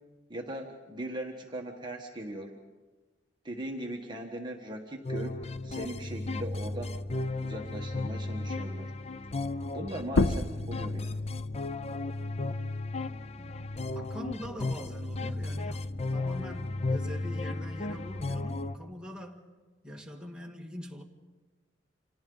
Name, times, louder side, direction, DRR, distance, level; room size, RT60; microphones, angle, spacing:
voice 1, 0.3-2.6 3.4-7.0 7.4-8.9 9.7-11.2, right 1 dB, 25° right, 1 dB, 1.5 m, -39 dB
sound 1, 5.0-18.8, left 2 dB, 35° left, 0.6 m, -34 dB
sound 2, 10.1-15.3 15.7-17.5, left 3 dB, 90° left, 0.8 m, -34 dB
voice 2, 13.4-15.9 16.1-19.5 19.8-21.0, equal, 5° right, 0 dB, 2.0 m, -43 dB
29.5 x 26.5 x 3.9 m, 1.3 s
head